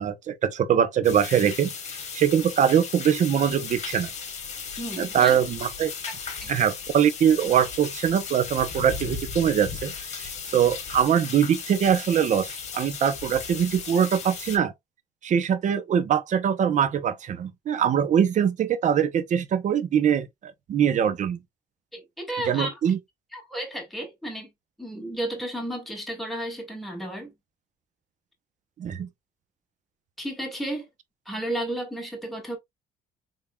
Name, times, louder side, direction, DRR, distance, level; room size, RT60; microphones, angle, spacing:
voice 1, 0.0-1.7 2.1-4.1 5.0-5.9 6.5-14.7 15.2-21.4 22.5-23.0 28.8-29.1, right 8 dB, 45° right, 0.7 m, -23 dB
sound 1, 1.0-14.6, left 6 dB, 45° left, 1.3 m, -36 dB
voice 2, 4.8-5.4 6.4-6.5 21.9-22.7 23.3-24.5 24.8-27.3 30.2-30.9 31.3-32.6, right 1 dB, ahead, 1.8 m, -33 dB
3.6 x 3.5 x 2.3 m
cardioid pair, 110°, 17 cm